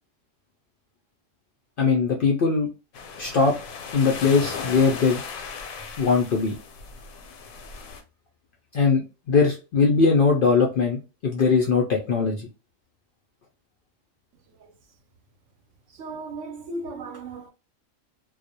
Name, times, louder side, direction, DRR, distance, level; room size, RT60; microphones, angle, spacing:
voice 1, 1.8-2.7 3.2-3.6 3.9-5.2 6.0-6.6 8.7-9.0 9.3-12.5, left 4 dB, 65° left, 0.5 m, -20 dB
sound 1, 2.9-8.0, left 5 dB, 85° left, 1.0 m, -37 dB
voice 2, 15.9-17.5, right 2 dB, 70° right, 0.9 m, -36 dB
2.3 x 2.0 x 2.6 m
omnidirectional pair, 1.4 m